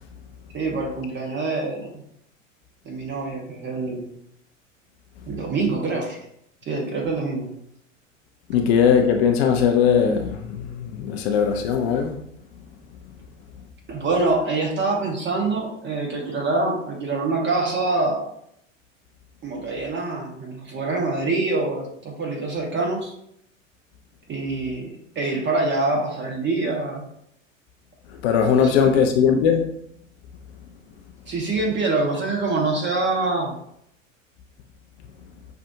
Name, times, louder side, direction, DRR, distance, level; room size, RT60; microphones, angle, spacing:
voice 1, 0.5-2.0 2.8-4.1 5.3-6.2 6.6-7.5 13.9-18.3 19.4-23.1 24.3-24.9 25.1-27.1 28.6-28.9 31.3-33.6, right 3 dB, 30° right, 1.2 m, -25 dB
voice 2, 8.5-12.2 28.2-29.7, left 7 dB, 50° left, 0.6 m, -19 dB
5.5 x 2.6 x 2.6 m
figure-of-eight pair, 80°, 40 cm